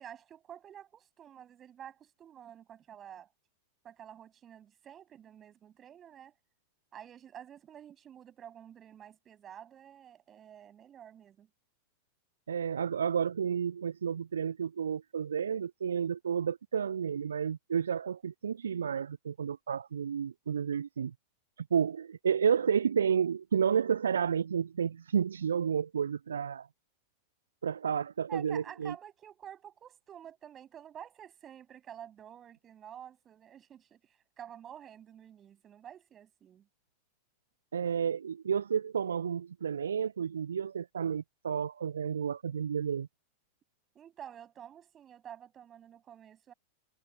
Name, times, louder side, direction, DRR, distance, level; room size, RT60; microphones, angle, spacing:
voice 1, 0.0-3.3 3.8-6.3 6.9-11.5 28.3-36.7 43.9-46.5, right 9 dB, 25° right, 7.8 m, -50 dB
voice 2, 12.5-21.1 21.6-26.7 27.6-28.9 37.7-43.1, right 7 dB, 70° right, 0.4 m, -31 dB
figure-of-eight pair, 90°, 0 cm